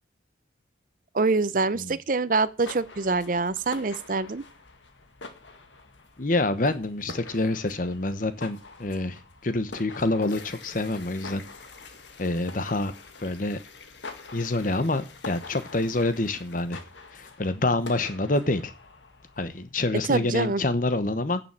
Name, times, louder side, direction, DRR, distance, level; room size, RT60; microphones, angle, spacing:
voice 1, 1.1-4.4 20.1-20.6, right 3 dB, 45° right, 0.6 m, -25 dB
sound 1, 2.5-19.7, left 3 dB, 90° left, 1.8 m, -46 dB
voice 2, 6.2-11.4 12.2-12.9 13.2-13.6 14.3-16.8 17.1-18.7 19.4-21.4, left 2 dB, 45° left, 1.0 m, -27 dB
sound 2, 9.9-17.2, left 4 dB, 75° left, 1.6 m, -49 dB
9.3 x 7.0 x 7.2 m
head